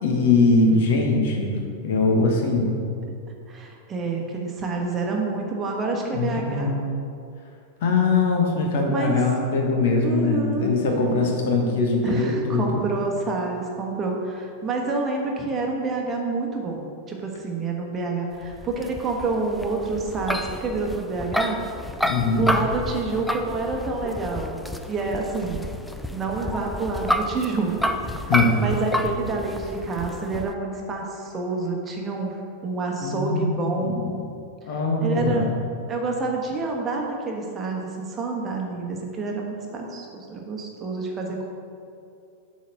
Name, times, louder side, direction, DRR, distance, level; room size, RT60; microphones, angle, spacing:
voice 1, 0.0-2.8 6.1-6.9 7.8-12.8 22.0-22.5 28.3-28.5 33.0-34.1 34.7-35.5, left 3 dB, 55° left, 1 dB, 1.3 m, -22 dB
voice 2, 3.5-6.7 8.9-9.2 10.0-10.8 12.0-21.6 22.4-24.6 24.9-25.7 26.1-28.3 28.6-34.1 34.7-35.5 35.9-41.5, right 3 dB, 25° right, 0 dB, 1.2 m, -28 dB
sound 1, 18.4-30.5, left 1 dB, ahead, 0.4 m, -30 dB
8.3 x 4.2 x 6.4 m, 2.5 s
figure-of-eight pair, 90°, 0 cm